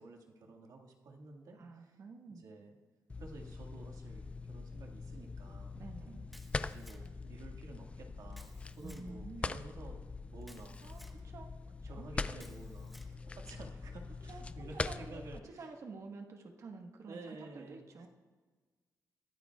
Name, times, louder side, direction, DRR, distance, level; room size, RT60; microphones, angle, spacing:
voice 1, 0.0-2.0 2.3-2.7 3.2-5.7 6.7-10.0 10.3-10.8 11.9-15.7 17.1-18.1, right 3 dB, 70° right, 1 dB, 1.9 m, -52 dB
voice 2, 1.5-2.4 5.7-6.3 8.8-9.6 10.8-12.0 14.3-18.1, right 3 dB, 50° right, 3 dB, 1.4 m, -50 dB
sound 1, 3.1-15.4, left 3 dB, 20° left, 0.3 m, -43 dB
Camera, 6.3-7.3 8.3-9.1 10.4-11.2 12.4-13.1, equal, ahead, 1.2 m, -59 dB
21.5 x 15.0 x 2.4 m, 1.4 s
wide cardioid pair, 145°, 6 cm